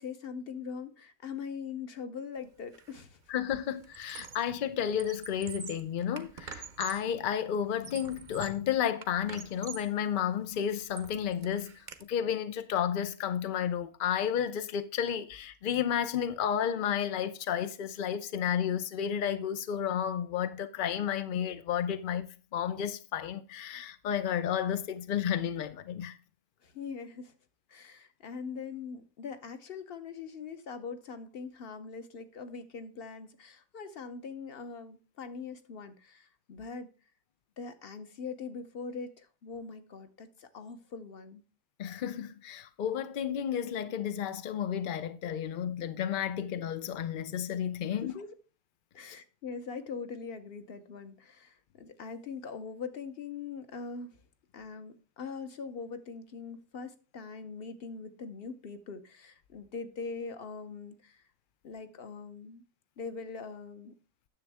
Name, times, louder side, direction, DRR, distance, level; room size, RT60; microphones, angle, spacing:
voice 1, 0.0-3.2 26.6-27.3 27.7-36.9 37.6-41.4 48.0-48.3 48.9-54.2 54.5-61.2 61.6-62.6 63.0-64.0, left 5 dB, 50° left, 1.0 m, -42 dB
Squeak, 2.7-3.0 3.3-4.6 4.9-7.1 7.6-8.7 9.0-10.0 10.4-12.0, right 6 dB, 45° right, 0.7 m, -46 dB
voice 2, 3.3-26.2 41.8-48.2, left 9 dB, 65° left, 0.5 m, -32 dB
9.9 x 7.1 x 3.4 m
omnidirectional pair, 1.5 m